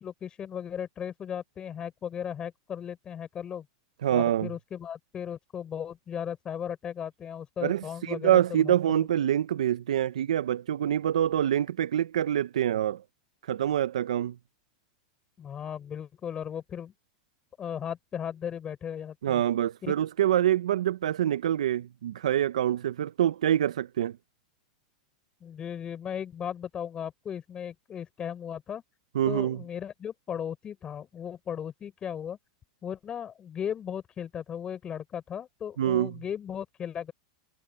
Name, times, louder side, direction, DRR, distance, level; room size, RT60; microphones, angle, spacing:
voice 1, 0.0-3.7 4.1-9.1 15.4-16.9 17.6-19.4 19.8-19.9 25.4-28.8 29.2-32.4 32.8-37.1, left 8 dB, 25° left, 6.6 m, -36 dB
voice 2, 4.0-4.5 7.6-13.0 13.4-14.3 19.2-24.2 29.1-29.6 35.8-36.1, right 11 dB, 85° right, 0.7 m, -26 dB
hypercardioid pair, 125°, 3 cm